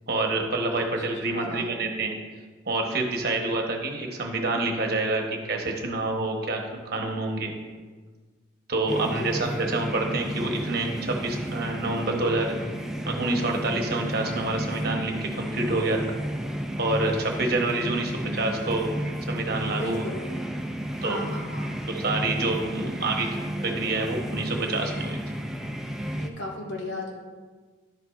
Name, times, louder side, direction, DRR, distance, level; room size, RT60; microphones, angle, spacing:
voice 1, 0.1-2.2 2.7-7.5 8.7-12.5 13.1-16.2 16.8-18.9 19.3-20.0 21.0-21.2 21.9-25.2, right 2 dB, 50° right, 2 dB, 1.1 m, -27 dB
voice 2, 1.3-1.7 8.9-9.7 17.6-18.1 19.8-20.2 21.0-21.7 22.8-22.9 23.2-23.4 26.1-27.1, left 1 dB, 65° left, -2 dB, 1.8 m, -36 dB
sound 1, 8.9-26.3, equal, ahead, 0.3 m, -32 dB
11.0 x 8.1 x 2.5 m, 1.4 s
head